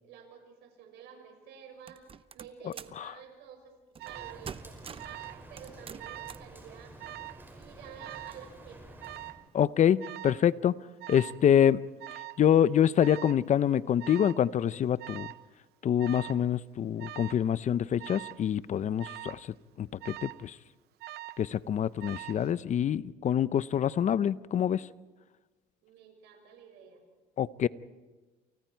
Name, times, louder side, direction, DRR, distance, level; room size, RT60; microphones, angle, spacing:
voice 1, 0.0-3.7 4.0-7.0 7.5-9.0 25.8-27.0, right 8 dB, 85° right, 3 dB, 6.2 m, -51 dB
sound 1, 1.9-3.0 3.9-4.2 4.4-5.2 5.6-6.5, right 6 dB, 30° right, 0.8 m, -45 dB
Alarm, 4.0-4.4 5.0-5.5 5.7-6.4 7.0-7.4 8.0-8.4 9.0-9.4 10.0-10.4 11.0-11.4 12.0-12.4 13.0-13.4 14.0-14.4 15.0-15.5 16.0-16.4 17.0-17.4 18.0-18.4 19.0-19.4 20.0-20.5 21.0-21.5 22.0-22.5, right 16 dB, 70° right, 0.7 m, -43 dB
Rain, 4.1-9.3, right 1 dB, 10° right, 5.7 m, -50 dB
voice 2, 9.5-10.8 11.1-11.8 12.4-15.3 15.8-20.6 21.4-24.9 27.4-27.7, left 9 dB, 45° left, 17 dB, 0.7 m, -26 dB
29.0 x 29.0 x 4.6 m, 1.2 s
cardioid pair, 110°, 17 cm